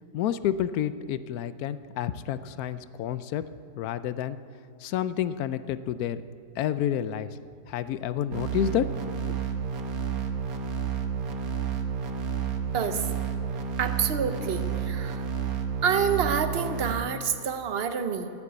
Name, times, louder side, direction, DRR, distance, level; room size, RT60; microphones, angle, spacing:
voice 1, 0.1-3.4 3.8-4.4 4.8-6.2 6.6-7.3 7.7-8.9, left 10 dB, 70° left, 14 dB, 1.0 m, -29 dB
sound 1, 8.3-16.9, right 6 dB, 65° right, 1.5 m, -31 dB
voice 2, 13.8-15.2 15.8-18.3, right 7 dB, 45° right, 9 dB, 0.8 m, -27 dB
13.5 x 9.7 x 8.1 m, 2.3 s
omnidirectional pair, 1.8 m